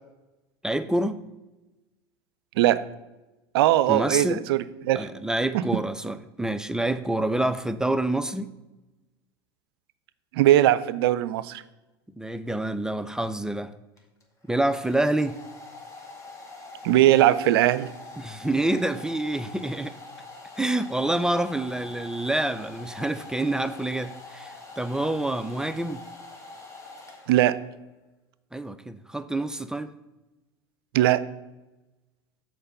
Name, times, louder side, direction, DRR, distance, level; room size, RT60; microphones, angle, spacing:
voice 1, 0.6-1.2 3.9-4.4 5.0-8.5 12.2-13.7 14.5-15.4 18.2-20.0 20.6-26.0 28.5-29.9, right 1 dB, 5° right, 0.4 m, -27 dB
voice 2, 3.5-5.1 5.5-5.6 10.3-11.6 16.8-17.9 27.3-27.6 30.9-31.2, right 13 dB, 70° right, 0.4 m, -20 dB
Domestic sounds home sounds, 14.0-27.7, left 3 dB, 20° left, 1.7 m, -44 dB
6.5 x 4.5 x 6.6 m
hypercardioid pair, 85°, 13 cm